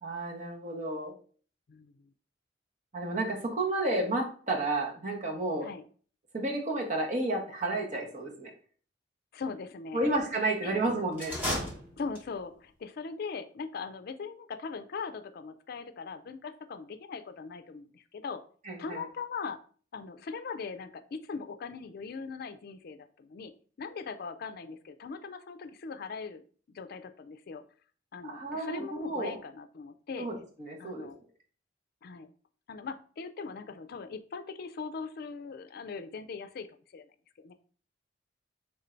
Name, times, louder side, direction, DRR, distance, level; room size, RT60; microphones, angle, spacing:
voice 1, 0.0-1.1 2.9-5.7 6.3-8.5 9.9-11.3 18.6-19.0 28.2-29.4 30.2-31.1, right 2 dB, 40° right, 0 dB, 1.1 m, -31 dB
voice 2, 9.3-10.1 10.6-10.8 12.0-18.4 18.8-19.6 19.9-23.5 23.8-26.4 26.7-27.6 28.1-30.3 30.8-31.2 32.0-32.3 32.7-36.7 36.9-37.0 37.4-37.5, left 5 dB, 55° left, 10 dB, 0.4 m, -40 dB
sound 1, 11.1-12.5, left 1 dB, 10° right, 1.1 m, -34 dB
3.6 x 2.6 x 4.3 m, 0.43 s
head